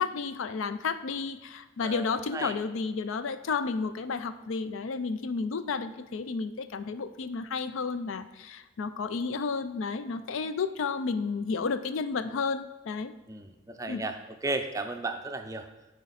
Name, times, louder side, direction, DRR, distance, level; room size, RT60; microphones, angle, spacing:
voice 1, 0.0-13.1 13.9-14.0, left 4 dB, 70° left, 12 dB, 0.4 m, -32 dB
voice 2, 1.8-2.6 13.3-14.2 14.4-15.7, right 2 dB, 15° right, 6 dB, 0.4 m, -34 dB
8.8 x 5.1 x 4.1 m, 1.0 s
head